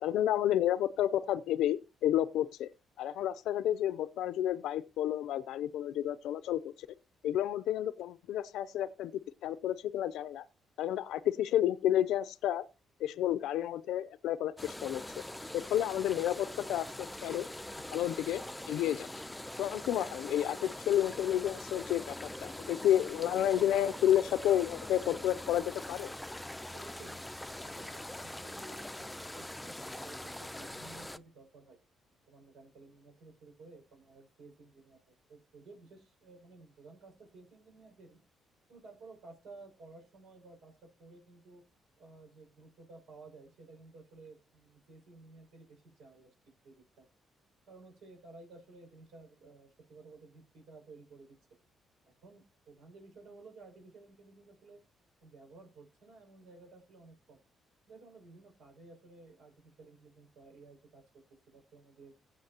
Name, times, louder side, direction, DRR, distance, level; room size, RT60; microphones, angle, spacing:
voice 1, 0.0-2.7 3.0-6.9 7.2-9.1 9.4-10.4 10.8-12.6 13.0-15.0 15.5-17.5 17.9-18.4 18.7-19.1 19.6-22.2 22.4-26.1, left 11 dB, 85° left, 0.5 m, -30 dB
sound 1, 14.6-31.2, left 1 dB, 5° left, 0.6 m, -43 dB
voice 2, 26.7-27.3 27.6-31.8 32.3-35.0 35.3-38.2 38.7-41.6 42.0-46.3 46.6-47.0 47.7-51.4 52.1-54.8 55.2-57.4 57.9-61.0 61.5-62.1, right 3 dB, 85° right, 6.0 m, -55 dB
16.0 x 7.6 x 2.9 m
cardioid pair, 90°, 0 cm